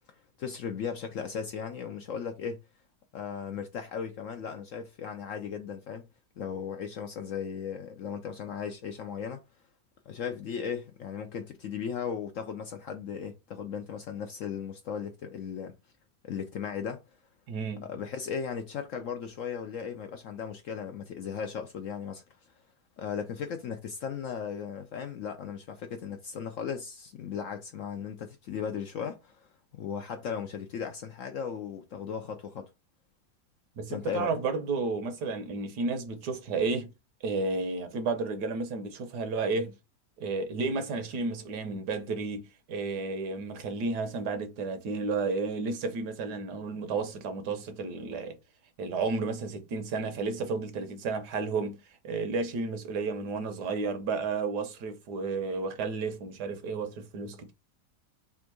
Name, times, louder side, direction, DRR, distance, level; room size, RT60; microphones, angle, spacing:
voice 1, 0.4-2.6 3.1-6.1 6.4-9.4 10.1-15.7 16.2-17.0 17.8-22.2 23.0-32.7 33.9-34.3, left 7 dB, 65° left, 0.8 m, -36 dB
voice 2, 17.5-17.8 33.8-36.9 37.2-39.7 40.2-48.4 48.8-51.8 52.0-57.5, right 4 dB, 80° right, 1.4 m, -32 dB
3.5 x 2.5 x 4.5 m
omnidirectional pair, 1.8 m